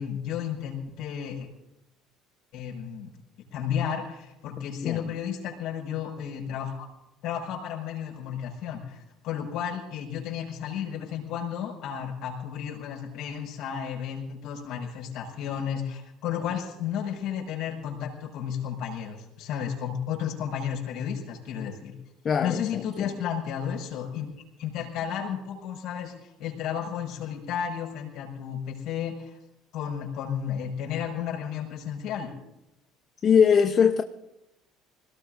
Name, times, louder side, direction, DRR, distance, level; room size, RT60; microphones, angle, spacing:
voice 1, 0.0-1.5 2.5-3.1 3.5-6.9 7.2-21.9 22.4-24.2 24.6-29.4 29.7-32.3, left 8 dB, 60° left, 5.7 m, -33 dB
voice 2, 22.2-23.1 33.2-34.0, left 7 dB, 40° left, 0.8 m, -21 dB
26.5 x 17.5 x 2.6 m
hypercardioid pair, 60°, 0 cm